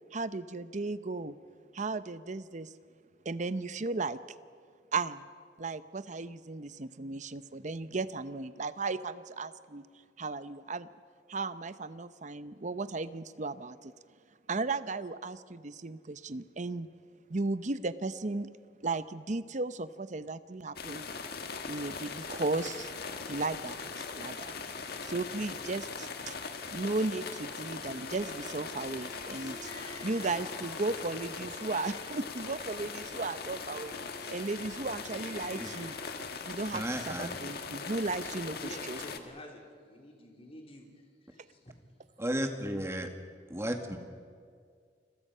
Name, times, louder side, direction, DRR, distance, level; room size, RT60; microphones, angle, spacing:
voice 1, 0.1-1.4 1.7-2.7 3.2-4.2 4.9-5.3 5.6-9.8 10.2-10.9 11.3-13.9 14.5-16.9 17.3-18.5 18.8-21.1 21.7-22.9 23.3-24.6 25.0-26.3 26.7-33.9 34.3-36.0 36.5-39.0, right 3 dB, 45° right, 13 dB, 0.8 m, -35 dB
sound 1, 20.8-39.2, left 5 dB, 60° left, 1.6 m, -40 dB
Harp, 27.0-38.3, left 2 dB, 80° left, 7.0 m, -50 dB
voice 2, 36.7-37.3 42.2-43.1 43.5-44.0, right 1 dB, 15° right, 5 dB, 1.9 m, -33 dB
voice 3, 38.6-40.8 41.4-41.7, left 1 dB, 35° left, 1 dB, 3.6 m, -48 dB
29.5 x 22.0 x 5.6 m, 2.1 s
head